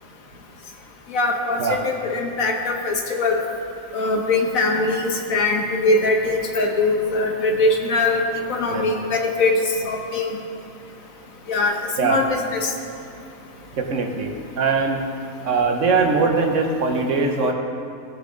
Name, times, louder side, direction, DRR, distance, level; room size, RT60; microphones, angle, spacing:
voice 1, 1.1-3.4 3.9-8.2 8.5-9.6 9.8-10.4 11.5-12.7, left 3 dB, 75° left, 2 dB, 1.5 m, -22 dB
voice 2, 13.7-15.0 15.4-17.5, right 4 dB, 65° right, 3 dB, 1.2 m, -21 dB
17.5 x 6.8 x 3.8 m, 2.5 s
omnidirectional pair, 1.4 m